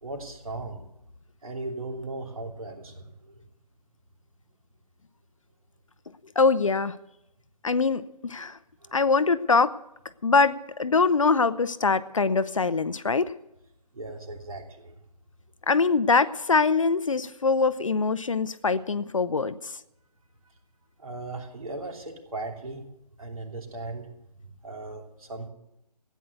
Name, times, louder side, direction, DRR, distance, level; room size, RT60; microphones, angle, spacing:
voice 1, 0.0-0.9 1.4-3.4 8.8-9.0 13.9-14.9 21.0-22.8 23.2-24.1 24.6-25.5, right 2 dB, 55° right, 3 dB, 3.1 m, -37 dB
voice 2, 6.4-7.0 7.6-8.6 8.9-9.7 10.2-13.3 15.7-19.7, left 4 dB, 50° left, 14 dB, 0.6 m, -23 dB
15.5 x 9.3 x 8.1 m, 0.85 s
figure-of-eight pair, 155°, 21 cm